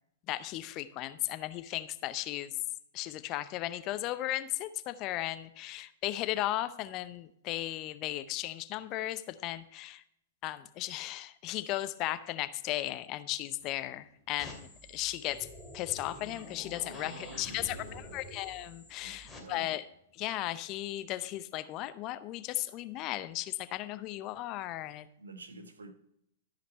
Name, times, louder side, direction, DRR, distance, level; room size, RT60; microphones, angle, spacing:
voice 1, 0.3-2.5 2.9-10.0 10.4-15.5 15.7-19.9 20.1-25.1, left 15 dB, 40° left, 0.6 m, -36 dB
sound 1, 13.6-20.3, right 1 dB, 15° right, 2.7 m, -57 dB
sound 2, 14.4-19.4, left 1 dB, 10° left, 2.6 m, -48 dB
voice 2, 16.8-18.2 19.0-19.7 25.2-25.9, right 3 dB, 85° right, 1.3 m, -49 dB
13.0 x 5.2 x 4.3 m
hypercardioid pair, 110°, 0 cm